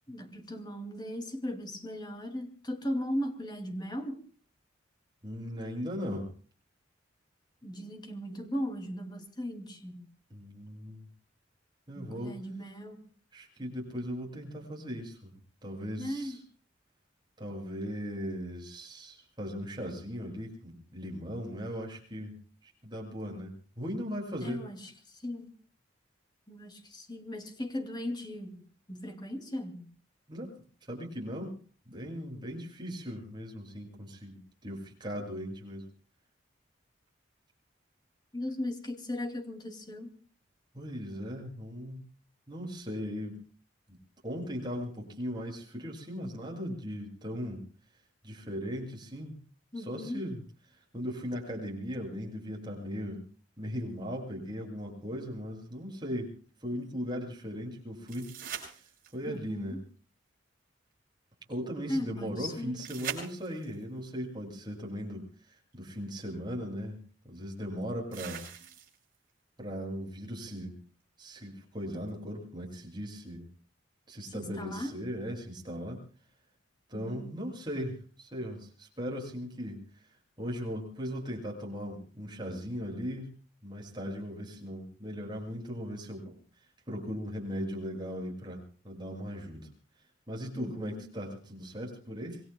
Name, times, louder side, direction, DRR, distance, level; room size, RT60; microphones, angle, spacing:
voice 1, 0.1-4.2 7.6-10.1 12.0-13.0 16.0-16.4 24.4-25.5 26.5-28.6 28.9-29.9 38.3-40.1 49.7-50.2 59.3-59.8 61.9-62.9 74.3-75.0 76.9-77.3 90.5-91.1, left 1 dB, 20° left, 2.5 m, -37 dB
voice 2, 5.2-6.3 10.3-11.1 11.9-12.4 13.3-15.2 15.6-16.4 17.4-22.3 22.6-24.6 30.3-30.6 30.9-31.5 31.9-35.8 40.7-42.0 42.5-43.4 44.2-47.6 48.2-49.4 49.8-50.4 50.9-53.3 53.6-56.3 56.6-58.3 59.1-59.8 61.5-67.0 67.2-68.5 69.6-70.8 71.2-73.5 74.1-76.0 76.9-79.8 80.4-83.3 83.6-86.4 86.9-89.7 90.3-92.4, equal, 25° right, 7.4 m, -38 dB
sound 1, 58.1-59.4 62.8-63.8 65.7-65.8 68.1-69.1 72.1-72.2, right 8 dB, 45° right, 7.6 m, -41 dB
27.5 x 22.0 x 2.3 m
head